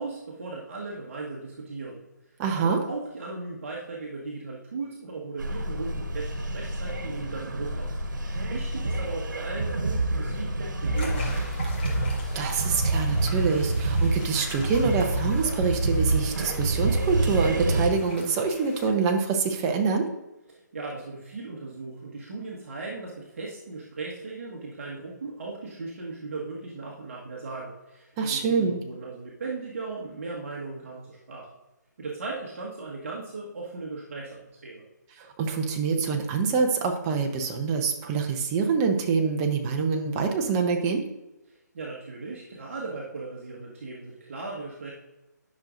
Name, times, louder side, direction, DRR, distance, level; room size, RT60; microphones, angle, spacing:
voice 1, 0.0-2.0 2.5-7.9 8.2-11.4 20.5-31.5 32.0-34.8 41.5-44.9, right 3 dB, 45° right, -3 dB, 1.5 m, -37 dB
voice 2, 2.4-2.8 12.3-20.1 28.2-28.8 35.2-41.1, right 5 dB, 15° right, 3 dB, 0.7 m, -25 dB
sound 1, 5.4-17.9, right 2 dB, 80° right, 1.3 m, -27 dB
sound 2, 10.9-18.9, left 2 dB, 35° left, 1.7 m, -43 dB
10.5 x 6.3 x 2.6 m, 0.99 s
hypercardioid pair, 160°, 10 cm